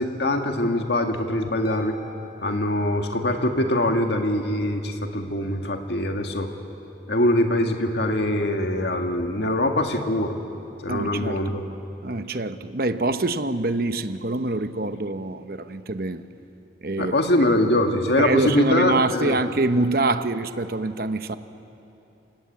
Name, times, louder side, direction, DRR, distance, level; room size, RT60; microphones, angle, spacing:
voice 1, 0.0-1.9 2.4-6.5 7.1-10.4 10.8-11.6 17.0-19.4, left 1 dB, 65° left, 4 dB, 2.0 m, -23 dB
Harp, 1.6-3.5, left 4 dB, 20° left, 4.9 m, -46 dB
voice 2, 10.9-11.6 12.0-16.2 16.8-17.1 18.2-21.4, right 2 dB, 55° right, 10 dB, 0.9 m, -25 dB
29.0 x 18.0 x 8.6 m, 2.9 s
head